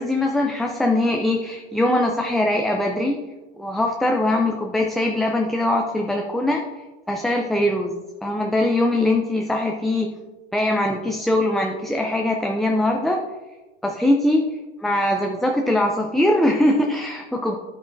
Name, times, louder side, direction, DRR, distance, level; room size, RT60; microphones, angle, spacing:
voice 1, 0.0-3.2 3.6-6.6 7.1-10.1 10.5-13.2 13.8-14.4 14.8-17.5, left 1 dB, ahead, 1 dB, 0.3 m, -21 dB
8.6 x 8.2 x 2.6 m, 1.2 s
hypercardioid pair, 115°, 33 cm